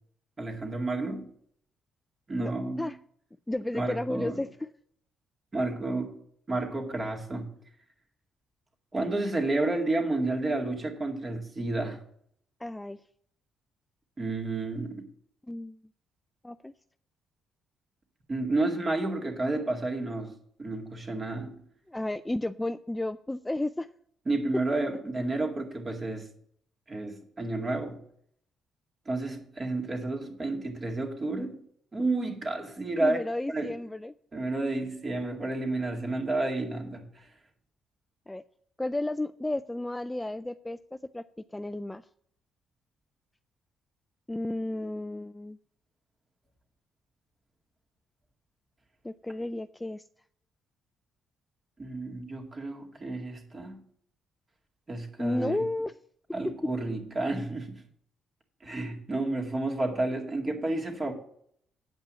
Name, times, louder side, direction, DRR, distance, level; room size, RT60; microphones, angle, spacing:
voice 1, 0.4-1.3 2.3-2.9 3.7-4.4 5.5-6.2 6.5-7.5 8.9-12.0 14.2-15.1 18.3-21.6 24.3-26.3 26.9-28.0 29.1-31.6 31.9-33.2 33.5-33.7 34.3-37.3 51.8-53.8 54.9-55.6 56.3-57.8 58.6-61.1, right 2 dB, 30° right, 1 dB, 2.2 m, -31 dB
voice 2, 2.4-3.0 3.5-4.7 12.6-13.0 15.5-15.8 16.4-16.7 21.9-23.9 33.0-34.1 38.3-38.4 38.8-41.2 41.5-42.0 44.3-45.6 49.0-50.0 55.2-55.9, left 1 dB, 10° left, 11 dB, 0.3 m, -33 dB
9.1 x 5.4 x 7.4 m, 0.65 s
cardioid pair, 105°, 0 cm